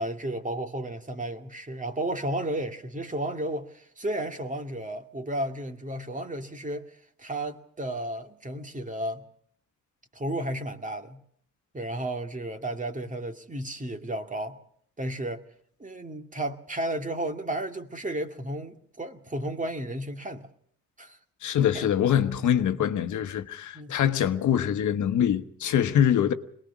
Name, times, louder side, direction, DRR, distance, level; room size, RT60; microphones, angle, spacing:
voice 1, 0.0-9.2 10.1-11.2 11.7-14.6 15.0-15.4 15.8-20.5 21.0-21.2 21.7-21.9 23.7-24.0, right 1 dB, 25° right, 2.2 m, -33 dB
voice 2, 21.4-26.3, left 9 dB, 85° left, 1.2 m, -24 dB
22.5 x 19.5 x 6.0 m
cardioid pair, 70°, 29 cm